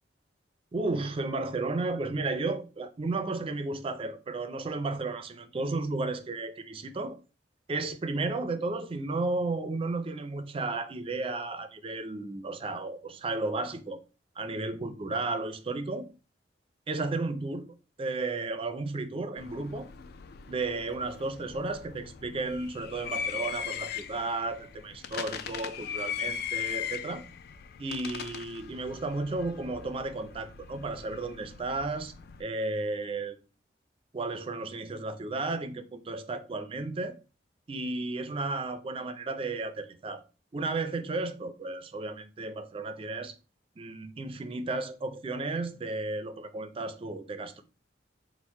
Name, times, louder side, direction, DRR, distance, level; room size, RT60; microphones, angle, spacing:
voice 1, 0.7-7.2 7.7-14.0 14.4-16.1 16.9-17.7 18.0-19.9 20.5-27.2 27.8-32.1 32.4-33.4 34.1-37.2 37.7-40.2 40.5-43.3 43.8-47.6, right 3 dB, 30° right, 0.4 m, -33 dB
sound 1, 19.4-32.4, left 8 dB, 55° left, 0.3 m, -39 dB
4.3 x 2.0 x 4.4 m
head